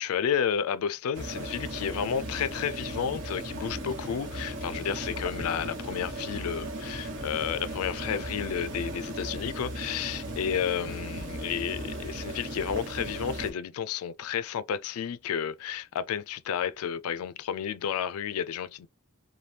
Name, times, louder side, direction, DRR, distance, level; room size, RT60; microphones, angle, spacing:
voice 1, 0.0-18.9, left 8 dB, 75° left, 0.3 m, -31 dB
sound 1, 1.1-13.5, right 1 dB, 55° right, 1.1 m, -37 dB
3.3 x 2.2 x 2.8 m
head